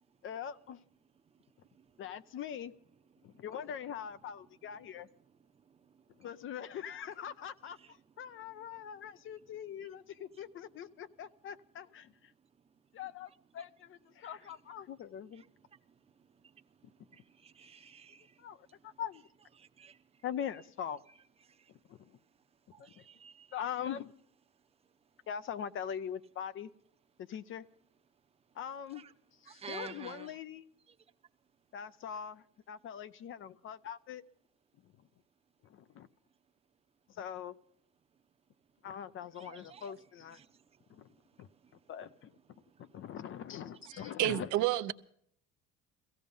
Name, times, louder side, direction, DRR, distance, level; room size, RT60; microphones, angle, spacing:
voice 1, 0.2-0.8 2.0-2.7 3.2-5.1 6.2-12.3 12.9-15.4 18.4-19.2 20.2-21.0 21.9-22.0 22.8-23.0 23.5-24.1 25.3-26.7 27.2-27.7 28.6-29.0 29.4-30.6 31.7-34.2 35.7-36.1 37.1-37.5 38.8-40.4 40.9-41.1 41.4-41.5 41.9-42.3 42.8-44.5, left 9 dB, 40° left, 0.6 m, -42 dB
voice 2, 5.5-6.3 7.7-7.9 10.3-10.4 13.6-13.7 14.4-14.5 15.3-19.0 19.6-20.2 21.1-21.2 21.4-21.7 22.7-23.6 28.9-29.1 29.5-30.4 30.9-31.0 39.3-39.9 40.3-41.8 42.5-43.0 43.8-44.1, right 6 dB, 20° right, 0.8 m, -54 dB
voice 3, 44.2-44.9, right 15 dB, 65° right, 0.8 m, -29 dB
17.5 x 15.5 x 5.4 m
cardioid pair, 165°, 33 cm